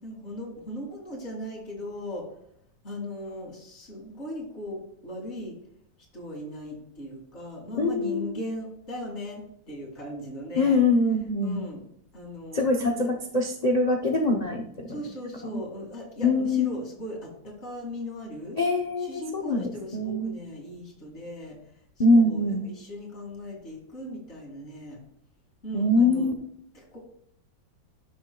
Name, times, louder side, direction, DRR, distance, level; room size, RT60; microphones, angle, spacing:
voice 1, 0.0-2.3 2.8-5.6 6.1-10.8 11.4-13.1 14.9-18.6 19.0-25.0 25.6-26.3 26.7-27.0, left 1 dB, 35° left, -1 dB, 2.5 m, -38 dB
voice 2, 7.8-8.3 10.6-11.6 12.5-13.1 13.3-14.6 16.2-16.7 18.6-20.4 22.0-22.7 25.7-26.3, left 2 dB, 80° left, 2 dB, 0.3 m, -23 dB
12.0 x 6.2 x 2.2 m, 0.72 s
omnidirectional pair, 2.0 m